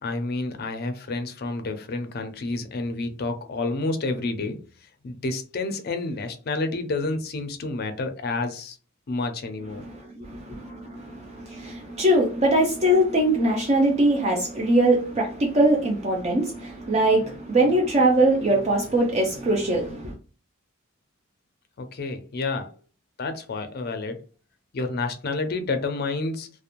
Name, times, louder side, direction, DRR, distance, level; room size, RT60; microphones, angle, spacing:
voice 1, 0.0-8.8 9.1-9.9 21.8-22.7 23.2-24.2 24.7-26.5, left 3 dB, 45° left, 0.4 m, -29 dB
voice 2, 10.2-20.1, right 1 dB, 30° right, 0.4 m, -22 dB
2.4 x 2.0 x 2.9 m
head